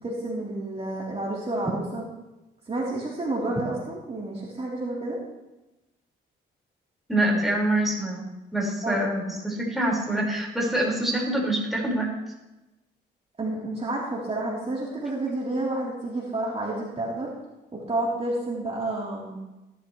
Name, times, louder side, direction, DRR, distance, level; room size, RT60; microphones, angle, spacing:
voice 1, 0.0-2.1 2.7-5.2 8.8-9.0 13.4-17.3 17.7-19.4, right 2 dB, 30° right, -5 dB, 3.6 m, -30 dB
voice 2, 7.1-8.2 8.5-12.1, right 1 dB, ahead, -3 dB, 5.1 m, -25 dB
18.0 x 12.5 x 3.3 m, 1.0 s
cardioid pair, 90°, 20 cm